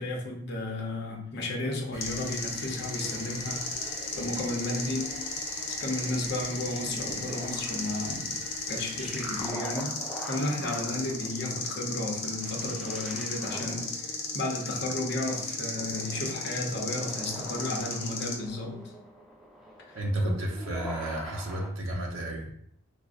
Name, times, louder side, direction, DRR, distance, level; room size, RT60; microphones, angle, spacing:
voice 1, 0.0-5.2 5.8-8.4 8.7-10.0 10.3-18.8 19.8-20.0 20.2-20.3, left 2 dB, 55° left, 0.6 m, -33 dB
sound 1, 1.9-9.5, equal, 30° right, 1.2 m, -45 dB
sound 2, 2.0-18.4, left 3 dB, 85° left, 0.8 m, -35 dB
sound 3, 3.0-21.7, equal, ahead, 0.4 m, -44 dB
voice 2, 19.9-22.5, right 1 dB, 70° right, 0.7 m, -32 dB
4.9 x 2.0 x 2.5 m
head